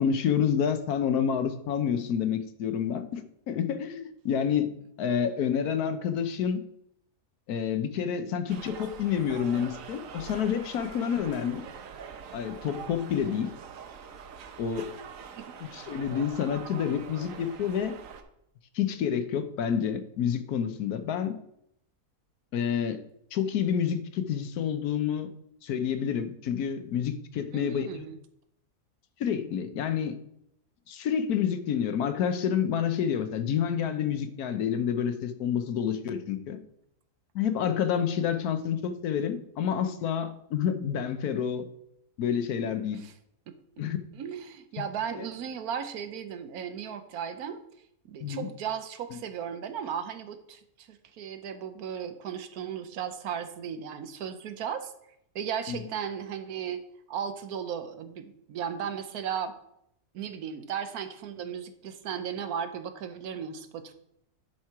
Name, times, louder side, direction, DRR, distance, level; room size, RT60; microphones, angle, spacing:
voice 1, 0.0-4.7 5.0-6.6 7.5-11.6 12.3-13.5 14.6-14.9 15.7-17.9 18.7-21.4 22.5-23.0 23.3-25.3 25.6-28.0 29.2-30.2 30.9-36.6 37.3-41.7 42.2-43.0 43.8-44.0 44.8-44.9 48.2-48.5 55.7-55.8, left 8 dB, 85° left, 9 dB, 1.3 m, -28 dB
sound 1, 8.5-18.2, right 7 dB, 65° right, 1.1 m, -44 dB
voice 2, 27.5-28.2 43.0-43.1 43.5-43.6 44.1-47.6 48.0-54.9 55.3-56.8 57.1-59.5 60.1-63.9, right 8 dB, 80° right, 9 dB, 1.2 m, -36 dB
10.5 x 4.5 x 4.7 m, 0.76 s
omnidirectional pair, 1.6 m